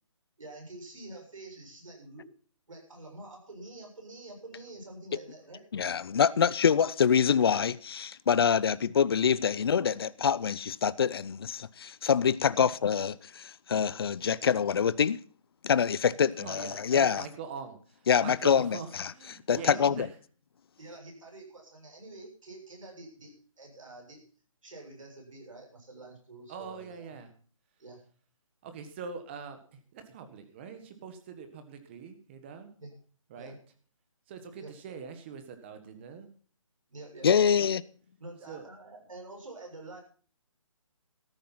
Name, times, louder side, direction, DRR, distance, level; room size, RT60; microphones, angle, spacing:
voice 1, 0.4-2.2 2.7-5.7 12.5-12.7 19.5-20.0 20.8-24.2 24.6-27.1 27.8-28.0 32.8-33.0 33.3-33.6 34.6-34.7 36.9-37.4 38.2-40.0, right 2 dB, 75° right, 7.2 m, -47 dB
voice 2, 5.7-15.2 15.6-17.2 18.1-19.1 19.5-20.1 37.2-37.8, left 7 dB, 45° left, 0.5 m, -25 dB
voice 3, 16.4-20.1 26.5-27.3 28.6-32.7 33.3-33.5 34.3-36.3 38.5-38.7, right 6 dB, 20° right, 1.4 m, -43 dB
13.5 x 10.0 x 5.8 m
hypercardioid pair, 165°, 17 cm